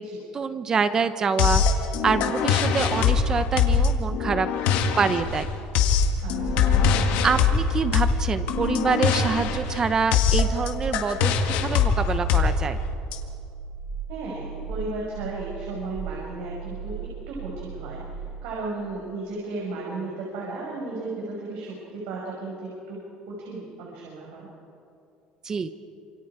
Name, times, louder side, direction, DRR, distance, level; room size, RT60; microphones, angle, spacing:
voice 1, 0.3-1.6 2.0-4.5 5.0-5.5 7.2-11.4 11.6-12.8 25.4-25.7, right 5 dB, 20° right, 11 dB, 0.8 m, -25 dB
sound 1, 1.4-13.2, left 6 dB, 65° left, 1.9 m, -23 dB
voice 2, 6.2-6.7 14.1-18.0 18.4-24.5, right 3 dB, 90° right, -3 dB, 5.8 m, -35 dB
sound 2, 12.8-18.2, right 6 dB, 10° left, 5.9 m, -37 dB
28.0 x 27.0 x 4.9 m, 2.5 s
cardioid pair, 180°, 3 cm